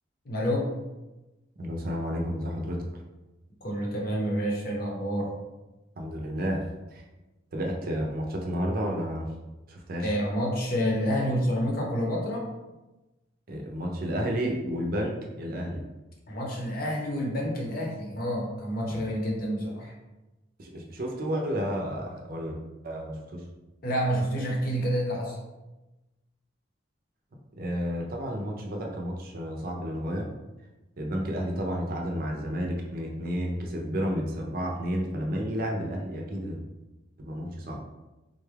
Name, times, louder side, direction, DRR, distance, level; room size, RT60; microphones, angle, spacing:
voice 1, 0.2-0.7 3.6-5.3 10.0-12.5 16.3-19.9 23.8-25.4, equal, 50° left, -2 dB, 0.8 m, -28 dB
voice 2, 1.6-2.9 6.0-7.0 7.5-9.3 9.7-10.1 13.5-15.8 18.9-19.1 20.6-22.6 22.8-23.5 27.6-30.3 31.0-36.6 37.2-37.8, equal, 50° right, 0 dB, 0.6 m, -31 dB
3.8 x 2.3 x 3.3 m, 1.1 s
head